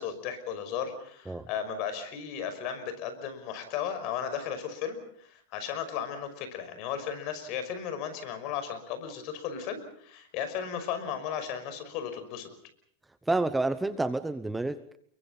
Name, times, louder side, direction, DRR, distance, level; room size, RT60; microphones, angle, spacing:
voice 1, 0.0-12.5, left 8 dB, 45° left, 10 dB, 5.6 m, -35 dB
voice 2, 13.3-15.0, right 2 dB, 5° right, 12 dB, 0.9 m, -29 dB
29.5 x 23.0 x 5.6 m, 0.62 s
supercardioid pair, 145°, 0 cm